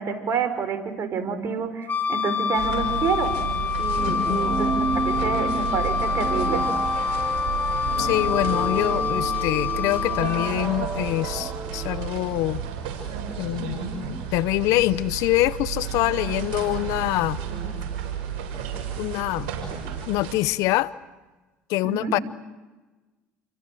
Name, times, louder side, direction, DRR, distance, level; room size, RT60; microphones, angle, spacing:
voice 1, 0.0-3.3 3.8-6.6 21.8-22.1, right 5 dB, 50° right, 9 dB, 5.0 m, -28 dB
Wind instrument woodwind instrument, 1.9-10.5, left 6 dB, 35° left, 3.2 m, -26 dB
sound 1, 2.5-20.3, right 7 dB, 75° right, 7.1 m, -32 dB
sound 2, 4.0-12.6, right 4 dB, 20° right, 3.4 m, -33 dB
voice 2, 4.1-4.4 8.0-12.6 13.4-13.8 14.1-17.4 19.0-19.5 20.1-20.9 21.7-22.2, left 17 dB, 70° left, 18 dB, 0.8 m, -25 dB
29.0 x 24.0 x 7.8 m, 1.2 s
hypercardioid pair, 75°, 6 cm